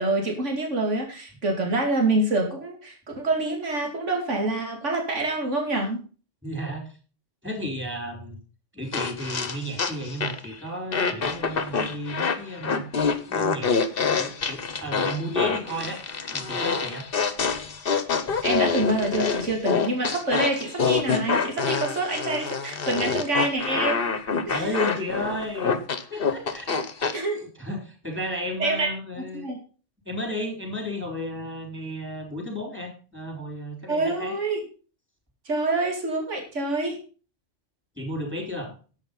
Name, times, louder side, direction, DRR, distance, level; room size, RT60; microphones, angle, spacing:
voice 1, 0.0-6.0 18.4-24.1 24.5-24.9 27.1-27.5 28.6-28.9 29.3-29.6 33.9-34.6 35.5-37.0, right 2 dB, 75° right, 2 dB, 2.9 m, -26 dB
voice 2, 6.4-6.9 7.4-8.4 8.7-12.9 13.3-13.7 14.1-16.0 16.3-17.1 24.5-25.7 26.1-26.7 27.6-29.4 30.1-34.3 38.0-38.7, equal, 10° right, 2 dB, 4.6 m, -33 dB
sound 1, 8.9-10.5 10.9-27.2, left 5 dB, 50° left, 1.3 m, -26 dB
11.0 x 8.2 x 5.4 m, 0.37 s
omnidirectional pair, 1.3 m